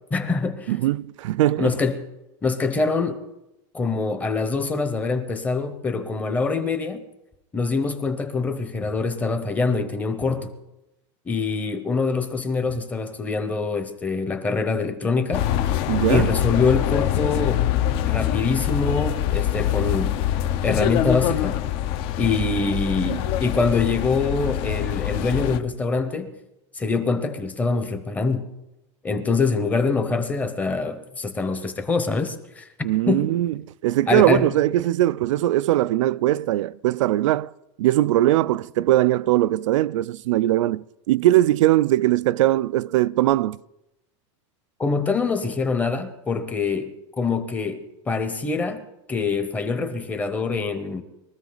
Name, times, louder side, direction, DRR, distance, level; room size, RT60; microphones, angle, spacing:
voice 1, 0.1-0.7 1.6-2.0 2.4-3.2 3.7-7.0 7.5-10.5 11.3-15.5 16.1-17.7 18.0-20.2 20.6-21.6 22.2-26.3 26.7-28.5 29.0-32.7 33.1-33.3 34.1-34.5 44.8-51.0, left 4 dB, 10° left, 0.9 m, -24 dB
voice 2, 0.7-1.7 15.9-16.3 23.0-23.2 32.8-33.5 33.8-37.5 37.8-43.6, right 15 dB, 85° right, 0.4 m, -20 dB
sound 1, 15.3-25.6, left 11 dB, 35° left, 0.7 m, -24 dB
22.5 x 14.0 x 4.0 m
supercardioid pair, 170°, 16 cm